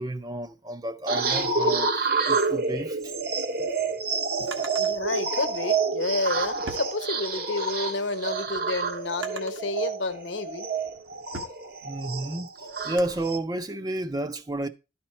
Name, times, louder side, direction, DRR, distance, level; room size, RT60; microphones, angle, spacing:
voice 1, 0.0-3.1 4.4-4.5 11.8-12.5 12.8-14.7, right 1 dB, 20° right, 0.4 m, -31 dB
sound 1, 1.1-13.4, right 4 dB, 50° right, 0.8 m, -28 dB
Drawer open or close, 3.3-4.9 6.0-7.6 8.0-9.7 10.4-13.2, right 2 dB, 70° right, 1.1 m, -44 dB
voice 2, 4.8-10.7, left 3 dB, 65° left, 0.9 m, -30 dB
12.0 x 4.3 x 4.2 m
head